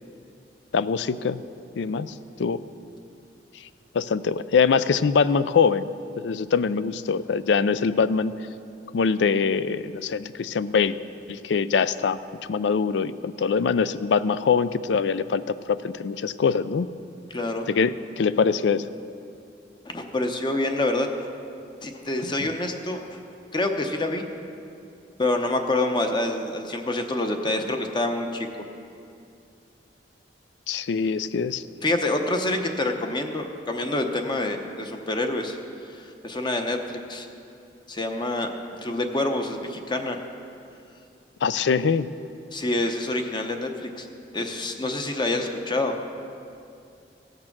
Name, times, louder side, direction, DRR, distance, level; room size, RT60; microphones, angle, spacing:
voice 1, 0.7-1.4 1.8-2.1 2.4-2.6 3.9-5.9 6.2-8.3 8.9-11.0 11.3-12.2 12.5-16.9 17.7-18.9 22.4-22.5 30.7-31.6 41.4-42.1, left 5 dB, 80° left, 15 dB, 0.4 m, -23 dB
voice 2, 17.3-17.7 19.9-21.3 21.8-23.2 23.5-24.2 25.2-28.5 31.8-35.6 35.9-37.3 37.9-38.5 38.8-40.2 42.5-44.1 44.3-46.0, left 2 dB, 25° left, 5 dB, 0.8 m, -27 dB
16.0 x 6.6 x 5.9 m, 2.6 s
head